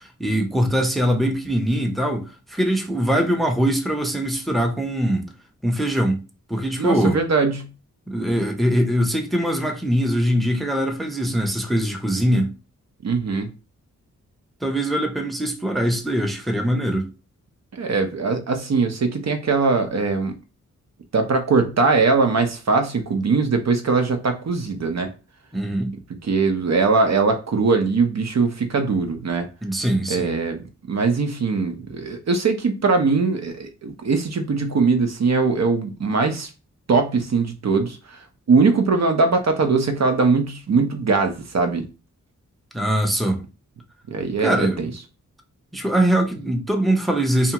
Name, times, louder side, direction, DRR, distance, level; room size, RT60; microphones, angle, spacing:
voice 1, 0.0-5.3 5.6-6.2 6.5-7.2 8.1-12.5 14.6-17.1 25.5-26.0 29.6-30.3 42.7-43.4 44.4-44.8 45.7-47.5, equal, ahead, 0.6 m, -22 dB
voice 2, 6.8-7.7 13.0-13.5 17.7-20.3 21.1-25.1 26.3-29.5 30.1-36.5 36.9-38.0 38.5-41.8 44.1-44.9, right 4 dB, 55° right, 0.6 m, -21 dB
2.7 x 2.3 x 2.8 m
cardioid pair, 55°, 32 cm